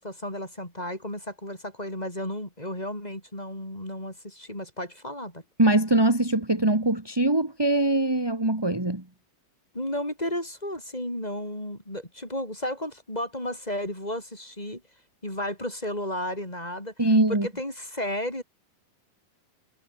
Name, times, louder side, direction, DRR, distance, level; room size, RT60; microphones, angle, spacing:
voice 1, 0.0-5.4 9.7-14.8 15.2-18.4, left 1 dB, 10° left, 7.1 m, -33 dB
voice 2, 5.6-9.0 17.0-17.5, right 2 dB, 10° right, 1.8 m, -22 dB
omnidirectional pair, 4.0 m